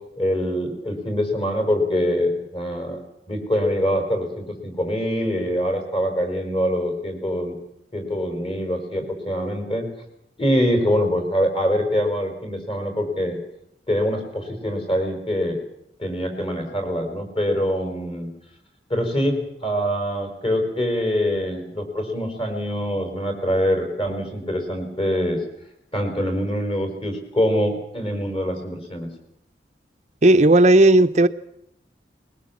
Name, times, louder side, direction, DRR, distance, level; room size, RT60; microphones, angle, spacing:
voice 1, 0.2-3.0 3.3-7.5 7.9-9.9 10.4-13.4 13.9-15.6 16.0-18.3 18.9-25.4 25.9-29.1, equal, 30° left, 5.2 m, -24 dB
voice 2, 30.2-31.3, right 1 dB, 40° right, 0.8 m, -13 dB
21.5 x 20.5 x 7.4 m
head